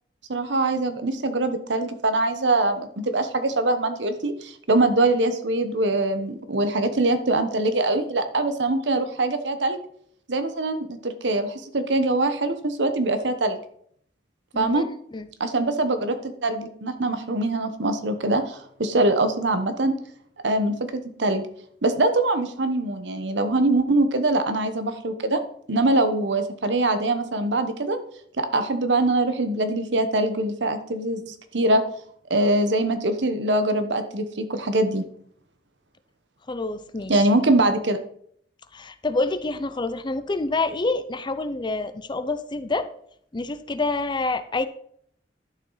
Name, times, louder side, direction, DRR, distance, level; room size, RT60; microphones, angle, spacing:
voice 1, 0.3-9.8 10.3-13.6 14.5-14.9 15.4-19.9 20.4-21.5 21.8-25.4 25.7-28.0 28.4-31.8 32.3-35.0 37.1-38.0, right 2 dB, 75° right, 9 dB, 1.1 m, -23 dB
voice 2, 14.5-15.3 36.5-37.1 38.7-42.9 43.3-44.7, left 3 dB, 25° left, 12 dB, 0.5 m, -27 dB
11.5 x 6.6 x 3.9 m, 0.65 s
head